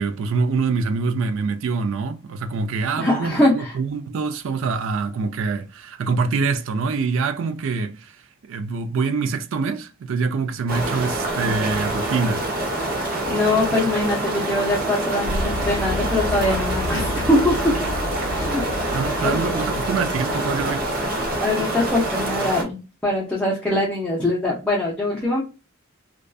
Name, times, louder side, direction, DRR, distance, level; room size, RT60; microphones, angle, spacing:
voice 1, 0.0-8.1 8.4-12.5 18.8-20.9, right 4 dB, 65° right, 0.4 m, -25 dB
voice 2, 3.0-3.8 13.3-17.7 18.3-19.4 21.4-25.4, left 1 dB, 5° left, 0.6 m, -23 dB
sound 1, 10.7-22.6, right 1 dB, 45° right, 0.8 m, -26 dB
sound 2, 15.2-21.5, left 1 dB, 75° left, 0.5 m, -31 dB
2.5 x 2.3 x 2.3 m
head